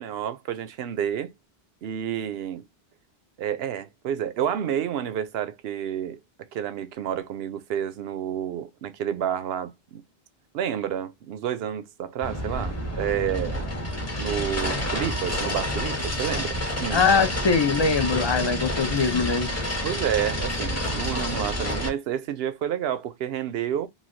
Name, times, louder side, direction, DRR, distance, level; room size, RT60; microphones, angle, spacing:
voice 1, 0.0-1.3 1.8-2.7 3.4-6.2 6.5-10.0 10.5-13.6 14.2-17.1 18.0-18.1 19.8-23.9, right 9 dB, 75° right, 0.8 m, -30 dB
sound 1, 12.2-21.9, left 1 dB, 15° left, 0.9 m, -29 dB
voice 2, 16.9-19.5, left 5 dB, 35° left, 0.5 m, -22 dB
3.1 x 2.6 x 2.6 m
omnidirectional pair, 1.0 m